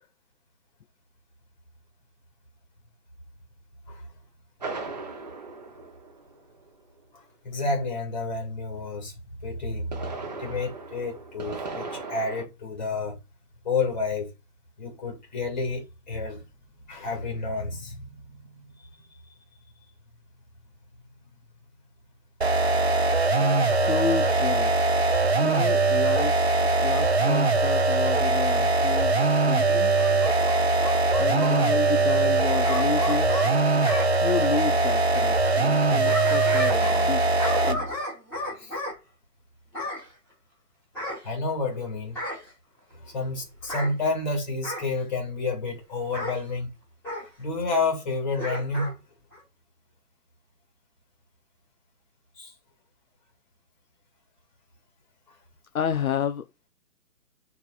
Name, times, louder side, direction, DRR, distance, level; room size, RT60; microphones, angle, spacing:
sound 1, 4.6-6.7 9.6-12.4, right 3 dB, 25° right, 0.9 m, -37 dB
voice 1, 7.4-9.1 9.4-10.1 10.4-13.2 13.6-14.3 14.8-16.4 16.9-18.6 38.6-38.7 41.2-42.2 43.0-46.7 47.1-49.0 52.4-52.5, left 3 dB, 25° left, 2.4 m, -30 dB
sound 2, 22.4-37.9, right 3 dB, 45° right, 0.5 m, -22 dB
voice 2, 23.7-25.0 25.4-26.5 26.8-29.9 31.2-33.4 34.2-38.1 55.7-56.5, left 8 dB, 60° left, 0.7 m, -31 dB
Bark / Growling, 29.9-31.6 32.6-34.1 35.7-37.1 37.4-39.0 39.7-40.1 40.9-41.7 42.1-42.5 43.6-43.9 44.6-44.9 46.1-46.4 47.0-47.3 48.4-48.9 49.3-49.4, left 1 dB, 5° left, 1.2 m, -33 dB
10.0 x 4.7 x 2.4 m
hypercardioid pair, 175°, 49 cm